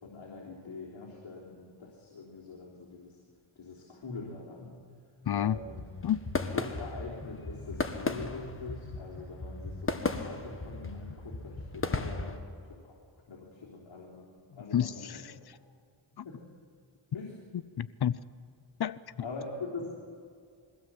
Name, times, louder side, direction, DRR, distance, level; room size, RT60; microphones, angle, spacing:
voice 1, 0.0-3.2 3.6-4.9 5.4-5.8 6.5-13.0 13.3-15.2 16.2-16.4 17.1-17.3 19.2-19.9, left 3 dB, 75° left, -4 dB, 3.5 m, -43 dB
voice 2, 5.2-5.6 6.0-6.2 14.7-15.3 16.2-16.3 17.5-18.2 18.8-19.3, left 10 dB, 55° left, 18 dB, 0.7 m, -30 dB
sound 1, 5.5-12.4, left 3 dB, 25° left, 1.6 m, -36 dB
22.5 x 16.0 x 7.7 m, 2.2 s
cardioid pair, 80°, 47 cm